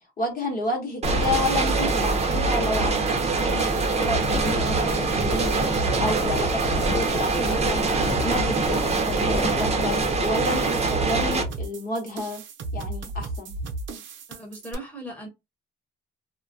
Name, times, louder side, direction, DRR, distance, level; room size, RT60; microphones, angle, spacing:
voice 1, 0.2-3.7 3.9-5.6 6.0-12.4 12.7-13.5, left 2 dB, 50° left, 1.0 m, -30 dB
sound 1, 1.0-11.4, right 3 dB, 35° right, 0.7 m, -24 dB
sound 2, 1.0-14.7, right 2 dB, 75° right, 0.6 m, -35 dB
sound 3, 4.1-10.1, left 3 dB, 30° left, 0.6 m, -33 dB
voice 2, 14.3-15.3, right 1 dB, 5° left, 1.2 m, -38 dB
2.2 x 2.2 x 2.6 m
cardioid pair, 90°, 20 cm